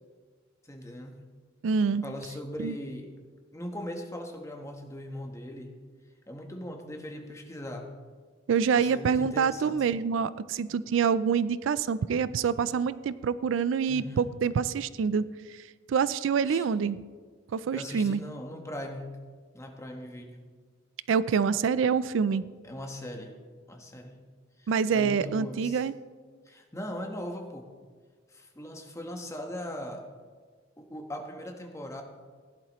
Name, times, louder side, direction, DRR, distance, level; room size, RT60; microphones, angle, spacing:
voice 1, 0.6-1.2 2.0-3.1 3.5-5.7 6.3-7.9 8.7-9.8 13.9-14.2 16.5-16.7 17.7-19.1 19.5-20.4 22.6-23.4 23.7-24.2 24.6-25.8 26.5-27.7 28.3-30.1 30.8-32.0, left 1 dB, 15° left, 3 dB, 1.2 m, -39 dB
voice 2, 1.6-2.0 2.6-2.8 8.5-15.2 15.5-15.6 15.9-17.0 17.5-18.2 21.1-22.4 24.7-26.0, right 6 dB, 85° right, 17 dB, 0.4 m, -26 dB
16.0 x 11.0 x 3.1 m, 1.5 s
head